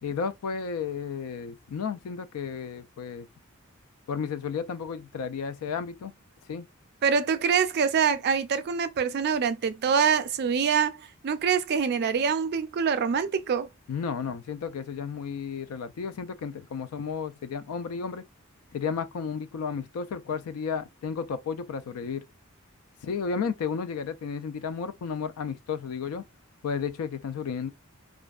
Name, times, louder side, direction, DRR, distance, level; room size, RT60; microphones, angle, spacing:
voice 1, 0.0-3.3 4.1-6.1 6.5-6.7 13.9-18.2 18.7-22.2 23.0-26.2 26.6-27.7, left 6 dB, 80° left, 0.3 m, -33 dB
voice 2, 7.0-13.7, right 6 dB, 50° right, 0.3 m, -25 dB
2.5 x 2.1 x 2.3 m
head